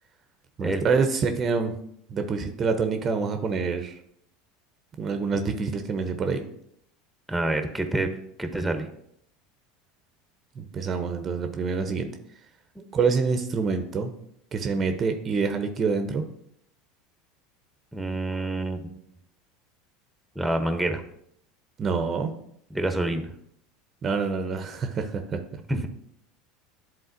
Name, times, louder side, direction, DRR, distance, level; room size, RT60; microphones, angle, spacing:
voice 1, 0.6-1.8 2.1-4.0 5.0-6.4 10.6-12.1 12.9-14.1 14.5-16.2 21.8-22.3 24.0-25.4, right 5 dB, 35° right, 7 dB, 0.7 m, -26 dB
voice 2, 7.3-8.1 8.4-8.9 12.8-12.9 17.9-18.8 20.3-21.0 22.7-23.3 25.7-25.9, right 2 dB, 5° right, 7 dB, 0.8 m, -27 dB
11.0 x 3.6 x 2.6 m, 0.72 s
hypercardioid pair, 80°, 0 cm